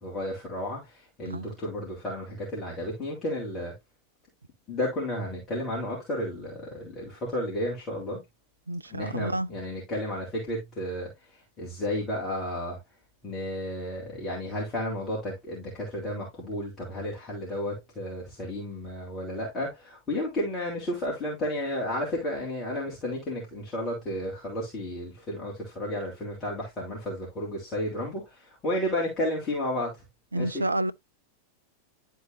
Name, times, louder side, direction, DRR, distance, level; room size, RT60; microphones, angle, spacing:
voice 1, 0.0-3.7 4.7-8.2 8.9-12.8 13.2-30.0 30.3-30.6, left 1 dB, 25° left, 3.3 m, -32 dB
voice 2, 8.7-9.5 30.3-30.9, right 1 dB, 80° right, 0.4 m, -29 dB
11.5 x 4.6 x 2.6 m
figure-of-eight pair, 90°, 0 cm